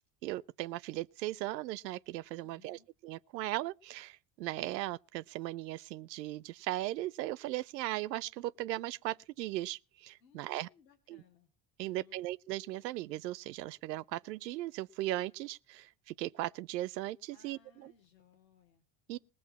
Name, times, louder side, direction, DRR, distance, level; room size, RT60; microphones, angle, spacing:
voice 1, 0.2-10.7 11.1-11.2 11.8-17.9 19.1-19.2, right 16 dB, 80° right, 0.6 m, -38 dB
voice 2, 2.4-2.9 10.2-11.5 11.8-12.3 17.3-19.2, left 7 dB, 85° left, 2.2 m, -65 dB
20.5 x 7.7 x 4.1 m
hypercardioid pair, 55°, 49 cm